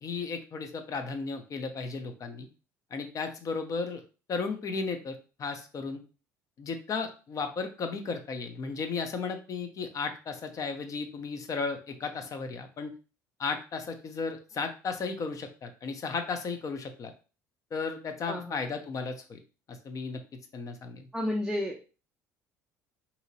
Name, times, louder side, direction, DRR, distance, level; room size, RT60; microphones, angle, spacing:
voice 1, 0.0-2.5 2.9-4.0 4.3-6.0 6.6-12.9 13.4-17.1 17.7-19.4 19.7-20.2 20.5-21.1, left 4 dB, 45° left, 6 dB, 0.7 m, -34 dB
voice 2, 18.3-18.6 21.1-21.9, left 1 dB, ahead, -1 dB, 0.6 m, -32 dB
2.8 x 2.8 x 2.8 m, 0.34 s
hypercardioid pair, 65°, 8 cm